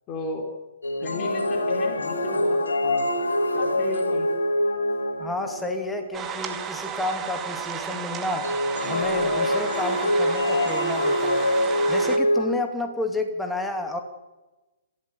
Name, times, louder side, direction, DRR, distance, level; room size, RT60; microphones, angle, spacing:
voice 1, 0.1-0.5 1.0-3.1 3.5-4.3, left 2 dB, 25° left, 3 dB, 4.5 m, -35 dB
sound 1, 0.8-5.9 8.4-12.5, left 1 dB, 70° left, 2.9 m, -24 dB
voice 2, 5.2-11.5 11.9-14.0, left 2 dB, 5° left, 5 dB, 2.6 m, -31 dB
sound 2, 6.1-12.2, right 8 dB, 20° right, 2.3 m, -33 dB
27.0 x 16.0 x 7.2 m, 1.1 s
figure-of-eight pair, 120°, 0 cm